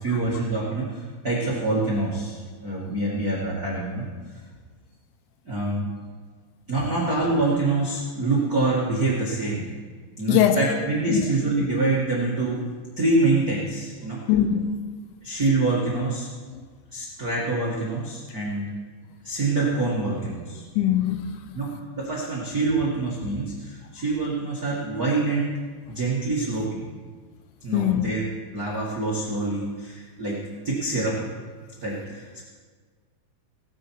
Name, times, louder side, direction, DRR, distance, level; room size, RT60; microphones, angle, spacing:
voice 1, 0.0-4.0 4.3-4.4 5.4-5.9 6.7-9.7 10.2-12.6 13.0-14.2 15.2-16.3 16.9-18.6 19.2-20.6 21.5-25.5 25.9-26.9 27.6-28.2 28.5-30.4 30.6-31.2 31.8-32.4, right 2 dB, 75° right, -6 dB, 0.8 m, -26 dB
voice 2, 10.3-10.6 11.1-11.3 14.3-14.8 20.8-21.4 27.7-28.1, left 10 dB, 80° left, 9 dB, 2.8 m, -21 dB
18.0 x 10.0 x 4.7 m, 1.5 s
omnidirectional pair, 5.6 m